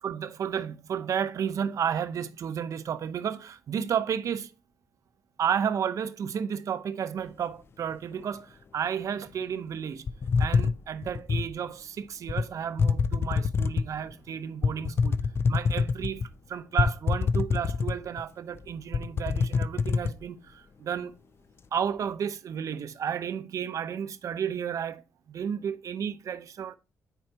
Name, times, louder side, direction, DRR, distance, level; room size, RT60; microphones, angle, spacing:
voice 1, 0.0-4.5 5.4-10.1 10.4-15.2 15.5-21.1 21.7-25.0 25.3-26.8, right 8 dB, 60° right, 0.7 m, -32 dB
sound 1, 10.1-11.5 12.3-12.4 12.8-14.0 14.6-16.3 16.8-18.2 18.6-18.7 18.9-20.1, left 5 dB, 40° left, 0.4 m, -26 dB
9.2 x 4.5 x 2.8 m
cardioid pair, 100°, 6 cm